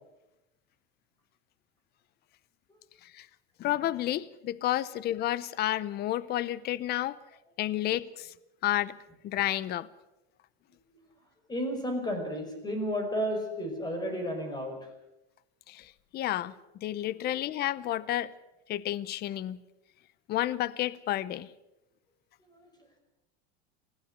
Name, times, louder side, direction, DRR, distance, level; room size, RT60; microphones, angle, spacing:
voice 1, 3.6-7.2 7.6-8.3 8.6-9.0 9.2-9.9 15.7-16.5 16.8-18.3 18.7-19.6 20.3-21.5, left 13 dB, 30° left, 0.7 m, -31 dB
voice 2, 11.5-14.7 22.5-22.7, equal, 10° left, 5.1 m, -32 dB
20.5 x 15.5 x 8.1 m
supercardioid pair, 145°, 33 cm